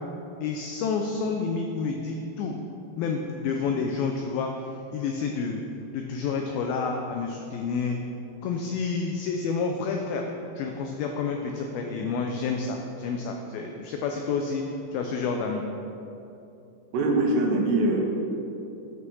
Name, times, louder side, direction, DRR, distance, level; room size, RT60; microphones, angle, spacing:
voice 1, 0.4-2.6 3.0-5.6 5.9-8.0 8.4-10.2 10.6-14.6 14.9-15.6, left 5 dB, 85° left, 3 dB, 2.1 m, -29 dB
voice 2, 16.9-18.0, right 2 dB, 75° right, 0 dB, 3.2 m, -22 dB
9.2 x 6.2 x 6.2 m, 2.8 s
omnidirectional pair, 4.9 m